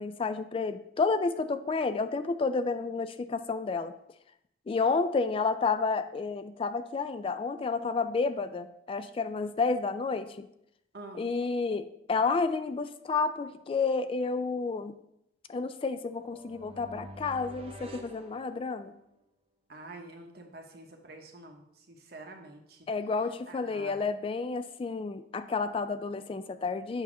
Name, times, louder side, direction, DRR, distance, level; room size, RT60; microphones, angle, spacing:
voice 1, 0.0-3.9 4.7-10.5 11.2-15.0 15.5-18.9 22.9-27.0, left 4 dB, 30° left, 11 dB, 0.3 m, -30 dB
voice 2, 10.9-11.2 19.7-22.9 23.5-24.0, right 2 dB, 60° right, 3 dB, 1.0 m, -47 dB
sound 1, 16.1-19.1, equal, 35° right, 0.7 m, -48 dB
8.0 x 2.8 x 6.1 m, 0.78 s
head